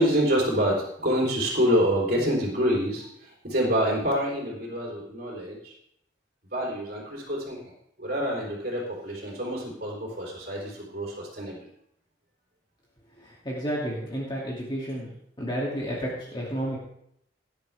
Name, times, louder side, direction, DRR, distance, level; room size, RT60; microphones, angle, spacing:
voice 1, 0.0-5.8 6.5-7.7 8.0-11.7, equal, 55° right, -3 dB, 3.8 m, -27 dB
voice 2, 13.2-15.1 15.4-16.8, equal, 25° left, -5 dB, 2.6 m, -31 dB
18.5 x 11.0 x 3.5 m, 0.74 s
head